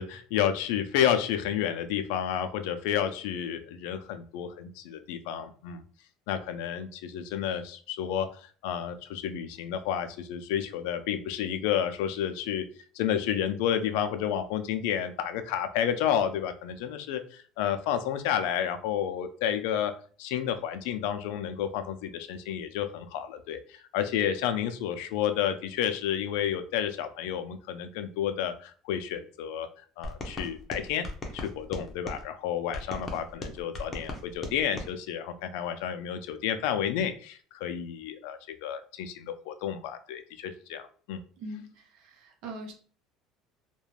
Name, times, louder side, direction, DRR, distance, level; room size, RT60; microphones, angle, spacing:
voice 1, 0.0-5.8 6.3-12.6 12.9-19.9 20.2-29.7 30.0-31.1 31.3-41.2, left 9 dB, 85° left, 9 dB, 0.3 m, -31 dB
sound 1, 30.0-32.2 32.7-34.9, left 2 dB, 25° left, 0.6 m, -38 dB
voice 2, 41.4-42.7, right 1 dB, 65° right, 4 dB, 0.7 m, -42 dB
2.4 x 2.1 x 3.1 m, 0.43 s
cardioid pair, 140°, 0 cm